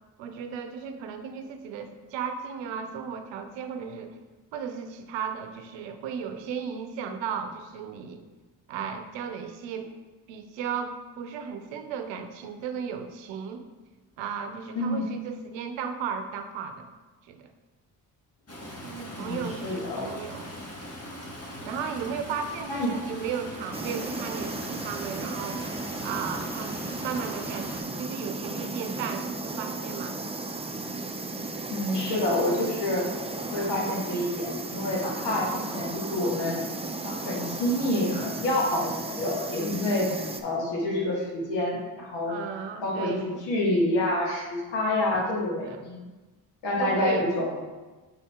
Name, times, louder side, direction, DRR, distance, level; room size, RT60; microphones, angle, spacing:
voice 1, 0.2-4.2 4.5-8.2 8.7-9.9 10.3-13.7 14.2-16.9 17.3-17.5 18.8-20.5 21.6-25.6 26.0-30.2 42.3-43.4 44.9-45.2 45.6-45.8 46.8-47.2, right 7 dB, 80° right, 7 dB, 0.7 m, -35 dB
voice 2, 14.7-15.1 19.1-20.1 22.7-23.0 31.7-33.0 33.5-36.7 37.0-42.4 42.8-46.1 46.6-47.5, left 1 dB, 75° left, -2 dB, 1.7 m, -28 dB
Stream, 18.5-27.8, left 1 dB, 35° left, 1.5 m, -41 dB
sound 1, 23.7-40.4, right 3 dB, 15° right, 0.6 m, -35 dB
6.5 x 4.1 x 3.6 m, 1.2 s
hypercardioid pair, 45°, 43 cm